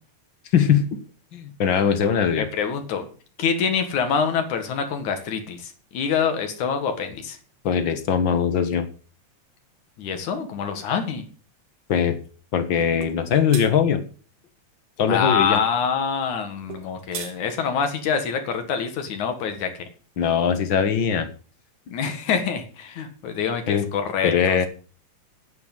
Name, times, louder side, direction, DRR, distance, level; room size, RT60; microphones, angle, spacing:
voice 1, 0.5-1.0 1.3-2.5 7.6-8.9 11.9-12.2 12.5-14.0 15.0-15.6 20.2-21.3 23.7-23.9 24.2-24.7, left 7 dB, 50° left, 9 dB, 1.8 m, -21 dB
voice 2, 2.3-3.1 3.4-7.4 10.0-11.2 15.1-19.7 21.9-24.7, left 6 dB, 85° left, 6 dB, 3.2 m, -25 dB
sound 1, 13.0-13.2 13.5-13.7 16.7-17.4, right 9 dB, 85° right, 2.8 m, -34 dB
9.9 x 8.5 x 7.3 m, 0.39 s
omnidirectional pair, 3.3 m